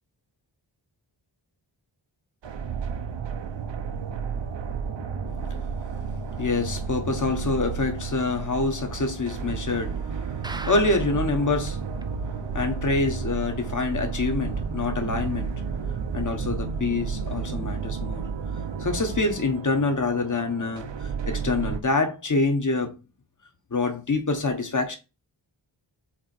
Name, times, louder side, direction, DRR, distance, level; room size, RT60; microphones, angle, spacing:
sound 1, 2.4-21.8, right 5 dB, 70° right, 0.8 m, -32 dB
voice 1, 5.2-5.9 6.4-11.8 12.5-15.6 16.1-18.3 18.8-22.9 23.7-25.0, left 3 dB, 40° left, 1.4 m, -26 dB
sound 2, 10.4-11.3 11.7-11.8 12.0-12.1 12.6-12.7, right 2 dB, 10° right, 0.4 m, -38 dB
7.3 x 3.0 x 4.4 m
wide cardioid pair, 130°, 45 cm